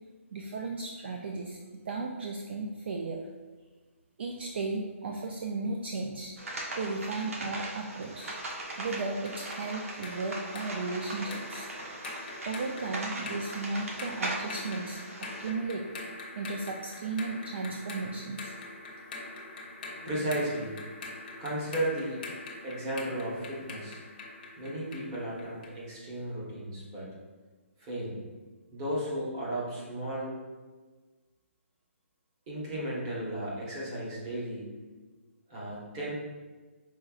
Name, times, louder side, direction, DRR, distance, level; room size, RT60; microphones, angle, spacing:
voice 1, 0.3-1.6 1.9-3.2 4.2-6.3 6.8-8.3 8.8-11.7 12.5-15.9 16.3-18.5, right 3 dB, 50° right, 1 dB, 0.4 m, -35 dB
sound 1, 6.4-15.5, right 1 dB, 75° right, 1.0 m, -39 dB
sound 2, 8.0-25.8, left 2 dB, 40° left, 0.7 m, -44 dB
voice 2, 20.0-20.8 21.4-22.2 22.6-24.0 24.6-27.1 27.8-28.1 28.7-30.3 32.5-34.7 35.5-36.1, right 1 dB, 20° right, -6 dB, 1.1 m, -34 dB
5.4 x 3.8 x 2.4 m, 1.3 s
hypercardioid pair, 165°, 7 cm